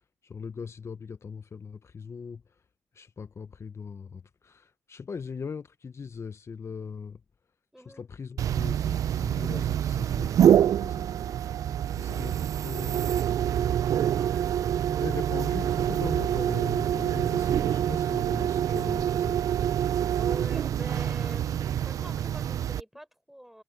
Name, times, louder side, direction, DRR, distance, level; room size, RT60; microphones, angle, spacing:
voice 1, 0.2-2.4 2.9-7.2 7.9-11.1 12.0-13.1 15.0-19.4, left 5 dB, 50° left, 0.9 m, -40 dB
voice 2, 7.7-8.0 14.2-14.5 20.1-23.6, equal, 5° right, 4.1 m, -45 dB
sound 1, 8.4-22.8, right 10 dB, 75° right, 0.5 m, -26 dB
supercardioid pair, 45°, 6 cm